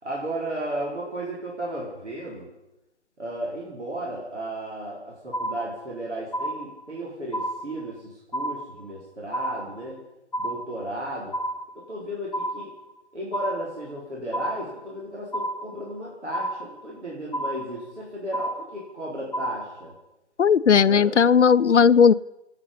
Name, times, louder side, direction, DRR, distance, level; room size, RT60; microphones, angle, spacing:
voice 1, 0.0-2.5 3.2-10.0 10.4-11.4 11.7-12.8 13.1-19.9 20.8-21.2, right 1 dB, 80° right, -5 dB, 4.5 m, -34 dB
sound 1, 5.3-6.0 6.3-7.0 7.3-8.0 8.3-9.0 9.3-10.0 10.3-11.0 11.3-12.0 12.3-13.0 13.3-14.0 14.3-15.0 15.3-16.0 16.3-17.0 17.3-18.0 18.3-19.0 19.3-20.0, right 1 dB, 40° left, 0.6 m, -31 dB
voice 2, 20.4-22.1, left 6 dB, 85° left, 17 dB, 0.5 m, -16 dB
26.5 x 9.7 x 5.5 m, 0.94 s
figure-of-eight pair, 155°, 34 cm